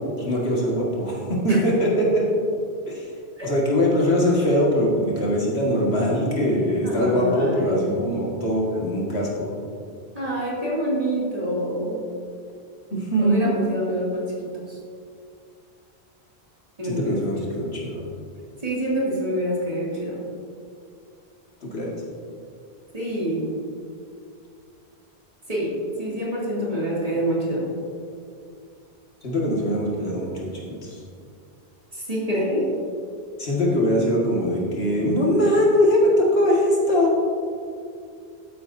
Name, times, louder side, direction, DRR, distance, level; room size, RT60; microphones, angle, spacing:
voice 1, 0.2-2.3 2.9-3.0 3.4-9.6 12.9-13.6 16.8-18.1 21.6-21.9 29.2-31.0 33.4-37.1, equal, 70° left, -4 dB, 2.0 m, -22 dB
voice 2, 6.8-8.0 10.1-12.0 13.2-14.8 16.8-17.5 18.6-20.2 22.9-23.5 25.5-27.7 31.9-32.7, equal, 35° right, -6 dB, 2.4 m, -26 dB
12.5 x 9.3 x 2.6 m, 2.4 s
omnidirectional pair, 1.1 m